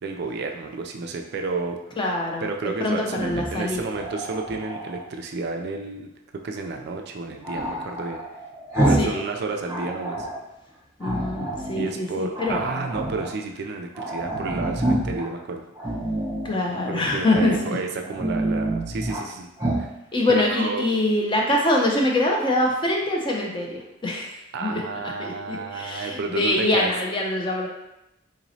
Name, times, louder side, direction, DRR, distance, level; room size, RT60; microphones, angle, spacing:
voice 1, 0.0-1.8 2.4-6.1 6.4-8.2 8.8-10.3 11.8-15.6 16.9-19.5 19.8-19.9 20.3-20.8 24.5-26.9, right 3 dB, 50° right, 3 dB, 0.3 m, -31 dB
voice 2, 2.0-3.8 9.0-9.1 11.0-12.6 16.4-17.8 20.1-24.3 24.6-24.8 25.2-27.7, left 1 dB, 25° left, -1 dB, 0.5 m, -24 dB
Growling, 3.1-5.1 7.4-9.2 9.5-10.4 11.0-11.9 12.3-13.3 13.6-13.7 13.9-15.3 15.7-16.5 17.2-17.7 18.0-19.2 19.6-19.9, right 1 dB, 15° right, 0.8 m, -28 dB
3.9 x 2.9 x 2.7 m, 0.87 s
head